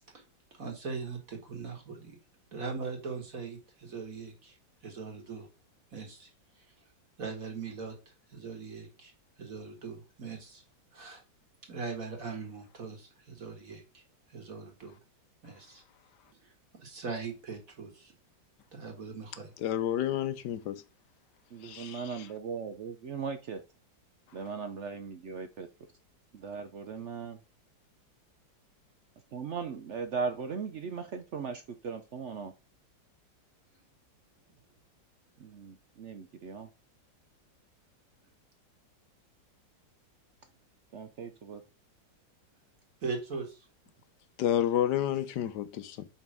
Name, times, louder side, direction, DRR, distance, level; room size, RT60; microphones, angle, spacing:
voice 1, 0.5-2.2 2.5-4.6 4.8-5.5 5.9-6.3 7.2-8.0 8.3-9.1 9.4-10.6 10.9-11.2 11.7-14.0 14.3-15.0 15.4-15.8 16.4-16.5 16.8-18.1 18.7-19.5 43.0-43.7, right 4 dB, 45° right, 1.9 m, -40 dB
voice 2, 19.6-20.8 21.6-22.1 44.4-46.1, left 11 dB, 70° left, 1.2 m, -30 dB
voice 3, 21.5-23.6 24.3-25.7 26.3-27.4 29.3-32.5 35.4-36.7 40.9-41.6, right 5 dB, 75° right, 0.6 m, -38 dB
5.3 x 4.4 x 6.1 m
omnidirectional pair, 2.1 m